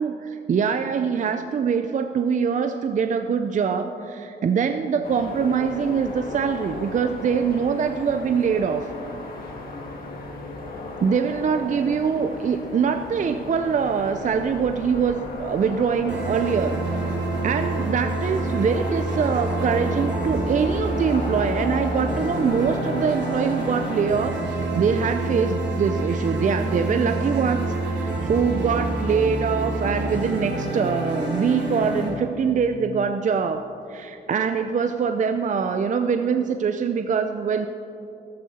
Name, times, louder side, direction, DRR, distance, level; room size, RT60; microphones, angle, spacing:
voice 1, 0.0-8.9 11.0-37.7, right 6 dB, 40° right, 7 dB, 0.5 m, -24 dB
sound 1, 5.0-24.0, left 2 dB, 50° left, 2.3 m, -36 dB
sound 2, 16.1-32.1, right 2 dB, 70° right, 3.0 m, -27 dB
14.0 x 13.0 x 4.2 m, 2.8 s
cardioid pair, 100°, 19 cm